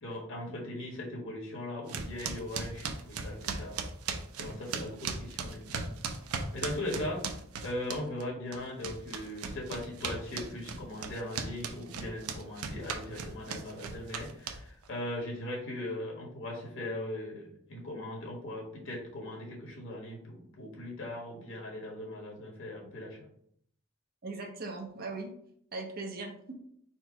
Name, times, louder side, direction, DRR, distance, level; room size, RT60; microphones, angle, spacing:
voice 1, 0.0-3.8 4.3-5.9 6.5-7.3 7.6-23.3, left 1 dB, 60° left, -2 dB, 1.4 m, -39 dB
sound 1, 1.9-8.2 8.5-14.9, right 5 dB, 80° right, 0.6 m, -37 dB
voice 2, 6.4-7.0 24.2-25.3 25.7-26.5, right 3 dB, 45° right, 2 dB, 0.8 m, -40 dB
4.3 x 2.2 x 4.5 m, 0.68 s
head